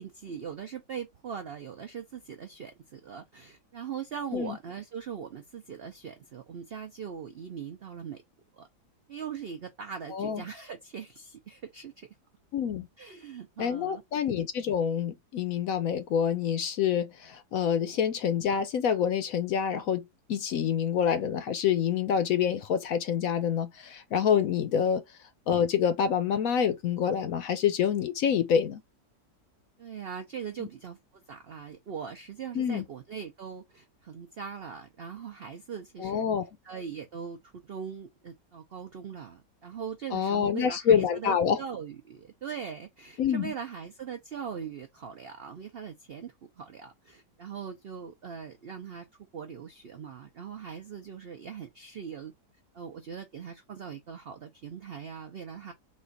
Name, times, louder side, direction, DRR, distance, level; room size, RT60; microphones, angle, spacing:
voice 1, 0.0-8.2 8.5-8.7 9.1-12.1 13.0-14.0 17.8-18.0 29.8-36.2 36.6-49.1 49.3-52.3 52.7-55.7, right 7 dB, 75° right, 0.5 m, -41 dB
voice 2, 10.1-10.4 12.5-12.9 13.6-25.0 25.5-28.8 32.5-32.8 36.0-36.4 40.1-41.6 43.2-43.5, left 8 dB, 65° left, 0.9 m, -27 dB
4.2 x 2.4 x 3.9 m
omnidirectional pair, 1.8 m